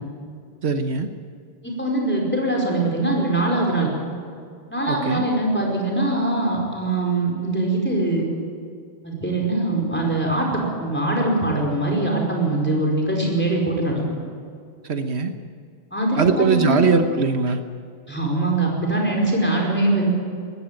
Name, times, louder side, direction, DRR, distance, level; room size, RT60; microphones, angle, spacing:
voice 1, 0.6-1.1 4.9-5.2 14.8-15.3 16.2-17.6, right 4 dB, 80° right, 8 dB, 1.4 m, -21 dB
voice 2, 1.6-3.9 4.7-8.3 9.0-14.0 15.9-16.9 18.1-20.1, right 2 dB, 10° left, -1 dB, 5.0 m, -22 dB
19.0 x 15.5 x 9.0 m, 2.3 s
omnidirectional pair, 1.1 m